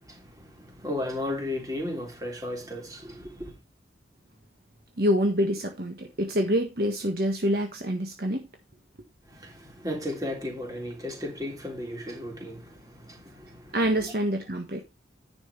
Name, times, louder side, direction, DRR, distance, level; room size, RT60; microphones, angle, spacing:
voice 1, 0.0-3.5 9.3-14.1, left 1 dB, 20° right, 3.5 m, -35 dB
voice 2, 5.0-8.5 13.7-14.8, equal, 55° right, 1.5 m, -26 dB
10.0 x 6.2 x 4.4 m
head